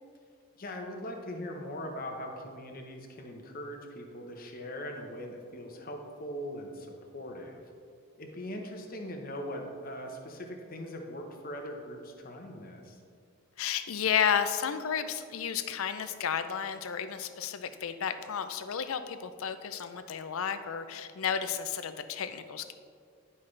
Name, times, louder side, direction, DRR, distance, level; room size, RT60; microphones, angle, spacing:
voice 1, 0.6-7.6 8.2-13.0, equal, 40° left, 3 dB, 0.9 m, -41 dB
voice 2, 13.6-22.7, left 7 dB, 75° left, 10 dB, 0.5 m, -32 dB
10.5 x 5.5 x 3.3 m, 2.2 s
head